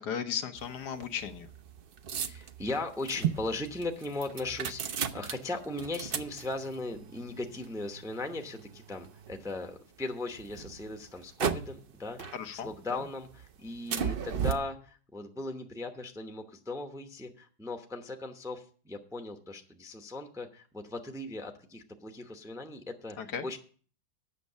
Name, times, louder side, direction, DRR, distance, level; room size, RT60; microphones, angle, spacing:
voice 1, 0.0-1.5 12.3-13.0 23.2-23.5, left 7 dB, 85° left, 8 dB, 1.5 m, -36 dB
sound 1, 0.6-9.8 10.3-11.9 12.2-13.0 13.3-14.5, right 8 dB, 60° right, 0.6 m, -36 dB
voice 2, 2.2-12.3 12.6-13.3 13.6-23.2 23.4-23.6, left 2 dB, 5° right, 5 dB, 0.6 m, -38 dB
8.3 x 6.5 x 8.2 m, 0.43 s
omnidirectional pair, 1.7 m